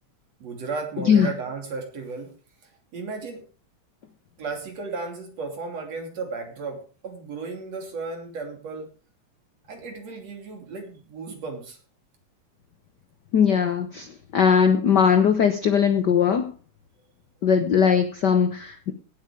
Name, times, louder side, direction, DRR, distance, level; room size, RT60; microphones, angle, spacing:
voice 1, 0.4-2.3 2.6-3.5 4.4-8.9 9.7-11.8, right 4 dB, 60° right, 3 dB, 4.1 m, -34 dB
voice 2, 13.3-14.1 14.3-16.5 17.4-18.9, left 7 dB, 80° left, 10 dB, 0.9 m, -19 dB
17.0 x 8.4 x 4.9 m, 0.37 s
omnidirectional pair, 3.3 m